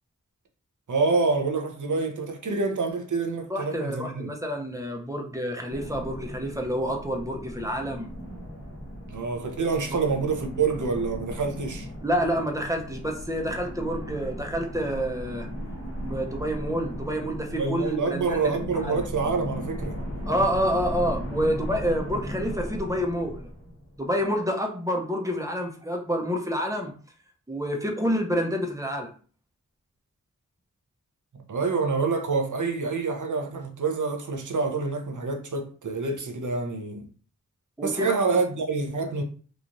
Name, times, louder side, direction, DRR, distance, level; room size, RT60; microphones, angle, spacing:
voice 1, 0.9-4.3 9.1-11.9 17.5-20.0 31.5-37.1 37.8-39.2, right 4 dB, 70° right, 0.7 m, -27 dB
voice 2, 3.5-8.1 12.0-15.5 16.0-19.0 20.3-23.5 24.0-26.9 27.5-29.1 37.8-38.1, equal, 10° right, 0.7 m, -28 dB
sound 1, 5.7-24.1, equal, 45° left, 1.0 m, -37 dB
3.0 x 2.4 x 2.6 m
wide cardioid pair, 60°, 32 cm